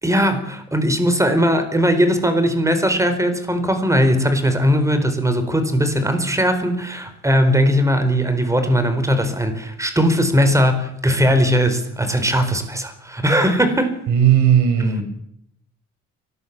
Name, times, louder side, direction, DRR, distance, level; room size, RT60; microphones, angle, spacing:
voice 1, 0.0-14.0, equal, 10° right, 8 dB, 4.4 m, -19 dB
voice 2, 14.1-15.0, right 9 dB, 85° right, 7 dB, 5.1 m, -15 dB
23.5 x 19.0 x 7.4 m, 0.74 s
cardioid pair, 90°, 30 cm